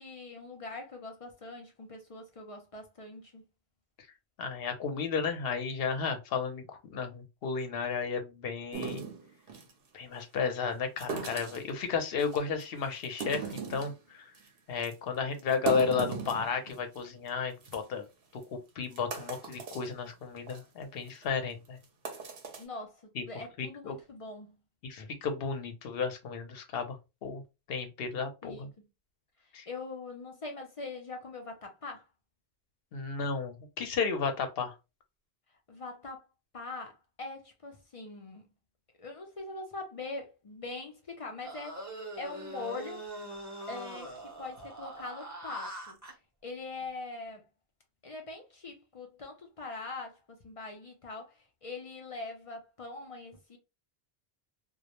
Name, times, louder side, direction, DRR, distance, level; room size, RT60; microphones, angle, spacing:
voice 1, 0.0-3.4 22.6-24.6 28.4-28.7 29.4-32.1 35.7-36.3 36.5-38.5 39.0-43.1 43.7-46.0 46.4-47.5 48.0-53.6, left 3 dB, 45° left, 0.4 m, -42 dB
voice 2, 4.4-9.0 9.9-14.3 14.7-18.1 18.3-21.8 23.2-23.3 23.6-24.0 24.8-27.0 27.2-27.4 27.7-28.7 29.5-29.7 32.9-34.7, left 5 dB, 65° left, 0.8 m, -33 dB
sound 1, 8.7-9.7 11.0-11.7 12.2-12.6 13.0-14.0 14.4-14.5 14.8-14.9 15.4-17.0 17.3-17.4 17.6-17.8 18.4-18.5 18.9-19.9 20.4-20.6 21.1-21.2 21.8-22.6, right 5 dB, 65° right, 0.8 m, -37 dB
sound 2, 41.4-46.1, right 1 dB, 20° right, 0.6 m, -42 dB
2.3 x 2.0 x 2.9 m
omnidirectional pair, 1.1 m